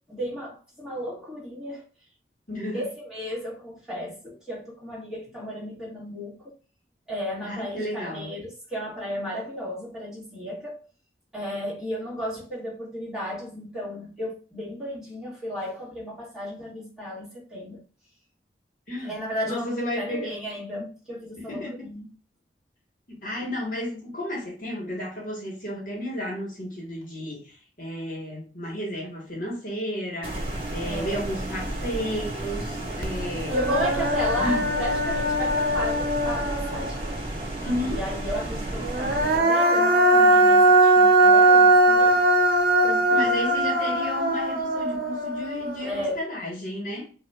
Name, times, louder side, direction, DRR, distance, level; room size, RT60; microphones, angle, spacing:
voice 1, 0.1-1.8 2.7-6.5 7.1-10.8 11.3-17.8 19.0-22.1 30.8-31.2 33.5-37.0 37.8-42.2 42.8-43.3 45.8-46.1, equal, 5° right, 2.1 m, -34 dB
voice 2, 2.5-2.8 7.4-8.4 18.9-19.1 19.5-20.3 21.4-21.9 23.2-33.7 34.4-34.7 37.6-38.0 43.1-47.1, left 1 dB, 50° left, 1.5 m, -32 dB
sound 1, 30.2-39.4, right 1 dB, 30° right, 1.5 m, -32 dB
Human voice, 33.0-33.1 33.5-37.1 38.8-46.1, right 2 dB, 55° right, 0.8 m, -20 dB
5.5 x 2.7 x 2.4 m
head